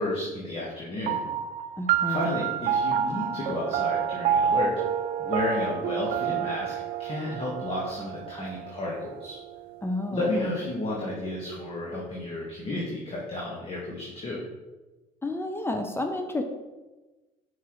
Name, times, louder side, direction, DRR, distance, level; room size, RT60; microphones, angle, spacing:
voice 1, 0.0-1.3 2.1-4.7 5.2-6.7 7.0-9.4 10.1-14.4, left 2 dB, 35° left, -4 dB, 1.7 m, -32 dB
sound 1, 1.1-9.9, right 8 dB, 55° right, 0.4 m, -29 dB
voice 2, 1.8-2.3 9.8-10.5 15.2-16.4, left 1 dB, 15° left, 5 dB, 0.7 m, -30 dB
5.9 x 5.5 x 3.2 m, 1.2 s
hypercardioid pair, 70°, 17 cm